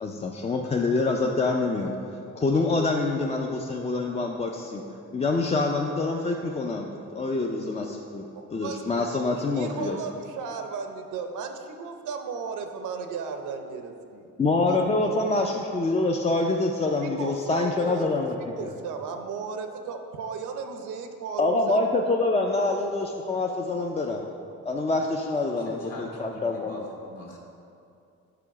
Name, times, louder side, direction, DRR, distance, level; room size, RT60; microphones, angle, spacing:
voice 1, 0.0-1.9 2.4-4.8 5.1-8.2 8.5-10.0 14.4-18.3 18.6-18.7 21.4-24.2 24.7-26.8, left 3 dB, 20° left, 1 dB, 0.4 m, -26 dB
voice 2, 8.3-8.8 9.1-9.2 9.5-14.3 14.7-15.1 16.0-16.1 17.0-18.1 18.6-21.8, right 5 dB, 80° right, 6 dB, 0.7 m, -35 dB
voice 3, 25.5-27.4, left 1 dB, 55° left, -1 dB, 1.5 m, -43 dB
5.0 x 4.7 x 5.8 m, 2.6 s
cardioid pair, 90°, 30 cm